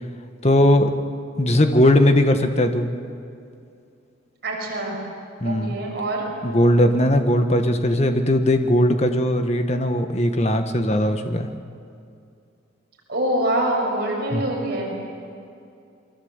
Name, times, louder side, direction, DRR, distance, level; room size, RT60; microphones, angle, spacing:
voice 1, 0.4-0.9 1.4-2.9 5.4-5.8 6.4-11.5 14.3-14.4, left 1 dB, 30° left, 6 dB, 1.5 m, -19 dB
voice 2, 4.4-5.0 5.4-6.3 13.1-14.9, right 1 dB, 50° right, -1 dB, 6.5 m, -25 dB
28.5 x 23.0 x 8.2 m, 2.5 s
head